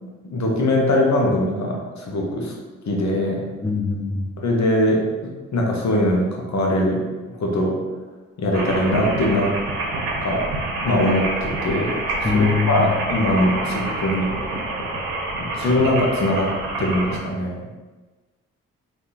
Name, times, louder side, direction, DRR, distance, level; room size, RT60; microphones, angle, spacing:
voice 1, 0.0-2.5 2.9-3.4 4.4-7.0 7.4-7.8 8.4-9.6 10.2-10.4 10.8-11.9 12.3-14.3 15.5-16.5 16.8-17.6, left 1 dB, 50° left, -1 dB, 1.0 m, -21 dB
voice 2, 3.6-4.2 12.2-12.9, left 5 dB, 10° left, 3 dB, 0.4 m, -22 dB
sound 1, 8.5-17.2, right 2 dB, 75° right, 0.9 m, -27 dB
3.6 x 2.9 x 2.9 m, 1.2 s
hypercardioid pair, 45°, 36 cm